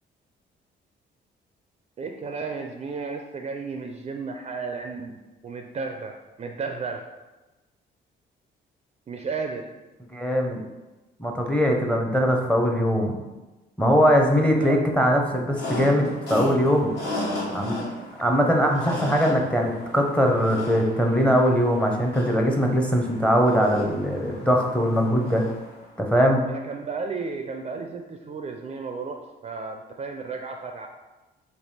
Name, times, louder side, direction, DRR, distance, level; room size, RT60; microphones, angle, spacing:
voice 1, 2.0-5.2 5.4-7.1 9.1-9.7 14.6-14.8 26.5-30.9, right 4 dB, 35° right, 4 dB, 0.4 m, -33 dB
voice 2, 10.1-10.6 11.2-13.1 13.8-16.9 17.5-17.8 18.2-25.4 26.0-26.4, equal, 5° left, 1 dB, 0.6 m, -21 dB
sound 1, 15.5-25.8, left 1 dB, 60° left, 1.2 m, -35 dB
3.4 x 2.7 x 4.1 m, 1.1 s
cardioid pair, 90°, 20 cm